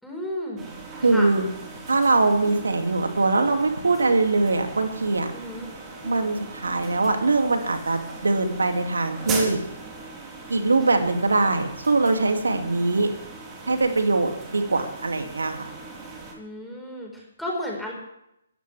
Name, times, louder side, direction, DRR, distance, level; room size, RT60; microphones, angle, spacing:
voice 1, 0.0-0.6 1.0-1.3 5.3-5.7 16.4-17.9, left 1 dB, ahead, -2 dB, 4.7 m, -33 dB
sound 1, 0.6-16.3, right 3 dB, 20° right, 3.9 m, -39 dB
voice 2, 1.0-1.5 1.9-5.3 6.0-9.6 10.5-13.1 13.7-15.7, right 3 dB, 80° right, 5 dB, 2.6 m, -22 dB
22.5 x 14.0 x 3.5 m, 0.82 s
figure-of-eight pair, 135°, 0 cm